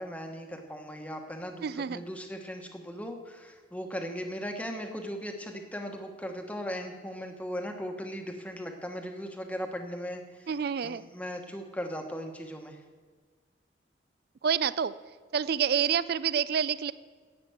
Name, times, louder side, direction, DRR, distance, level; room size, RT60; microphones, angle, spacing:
voice 1, 0.0-10.5 10.8-12.8, equal, 10° left, 4 dB, 1.2 m, -38 dB
voice 2, 1.6-2.0 10.5-11.1 14.4-14.9 15.3-16.9, right 7 dB, 55° right, 17 dB, 0.4 m, -28 dB
11.0 x 8.2 x 7.9 m, 1.5 s
head